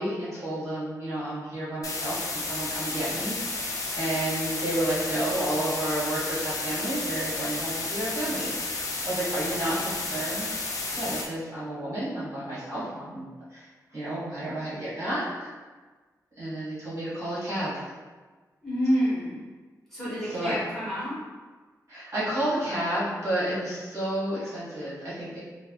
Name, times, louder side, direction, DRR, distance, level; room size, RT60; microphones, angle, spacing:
voice 1, 0.0-8.5 9.0-10.4 11.0-15.2 16.4-17.8 20.3-20.5 21.9-25.4, right 1 dB, 55° right, -11 dB, 1.3 m, -31 dB
sound 1, 1.8-11.3, left 3 dB, 60° left, 0.4 m, -32 dB
voice 2, 9.7-10.0 12.7-12.9 18.6-19.4 19.9-21.2, equal, 5° left, -12 dB, 1.1 m, -29 dB
3.3 x 2.0 x 2.3 m, 1.3 s
wide cardioid pair, 170°, 7 cm